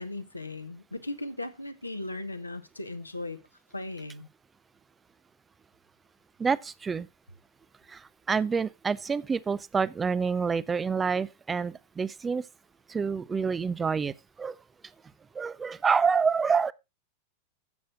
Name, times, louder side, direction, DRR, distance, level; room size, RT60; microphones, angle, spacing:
voice 1, 0.0-3.4 3.7-4.3, left 2 dB, 85° left, 1.2 m, -37 dB
voice 2, 6.4-7.1 7.9-8.0 8.3-12.4 12.9-14.6 15.4-16.7, right 5 dB, 15° right, 0.5 m, -27 dB
13.0 x 7.8 x 3.8 m
figure-of-eight pair, 90°, 0 cm